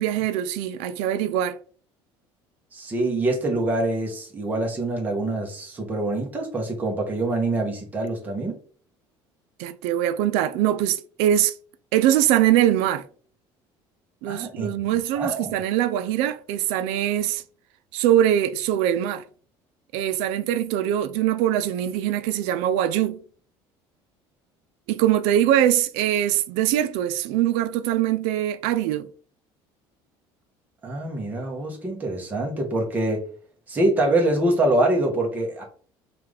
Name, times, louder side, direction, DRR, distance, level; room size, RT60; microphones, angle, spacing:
voice 1, 0.0-1.6 9.6-11.5 11.9-13.0 14.2-17.4 17.9-19.2 19.9-23.2 24.9-29.1, right 11 dB, 85° right, 0.4 m, -22 dB
voice 2, 2.7-8.6 14.3-14.7 15.1-15.5 30.8-33.3 33.7-35.6, right 2 dB, 15° right, 1.0 m, -25 dB
5.7 x 2.6 x 3.2 m
cardioid pair, 165°, 10 cm